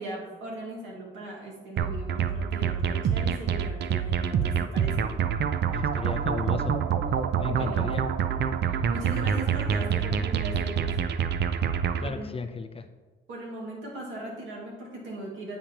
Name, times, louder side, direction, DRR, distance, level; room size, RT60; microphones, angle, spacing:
voice 1, 0.0-5.1 7.5-7.9 8.7-11.0 12.0-12.3 13.3-15.6, right 1 dB, 75° right, -2 dB, 2.1 m, -38 dB
sound 1, 1.8-12.1, right 7 dB, 60° right, 0.4 m, -26 dB
voice 2, 5.7-6.8 7.4-8.0 12.0-12.9, left 4 dB, 30° left, 8 dB, 0.5 m, -34 dB
8.7 x 5.1 x 2.9 m, 1.3 s
cardioid pair, 90°, 20 cm